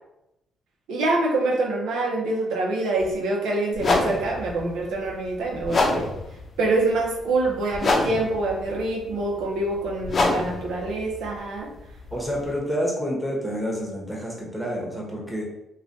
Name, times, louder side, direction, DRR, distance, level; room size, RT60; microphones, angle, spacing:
voice 1, 0.9-6.1 6.6-11.7, right 2 dB, 90° right, -1 dB, 0.6 m, -25 dB
sound 1, 3.0-3.1 3.7-12.6, left 2 dB, 45° left, 0.5 m, -27 dB
voice 2, 12.1-15.5, equal, ahead, -3 dB, 0.9 m, -28 dB
3.1 x 2.2 x 2.6 m, 0.89 s
cardioid pair, 90°, 0 cm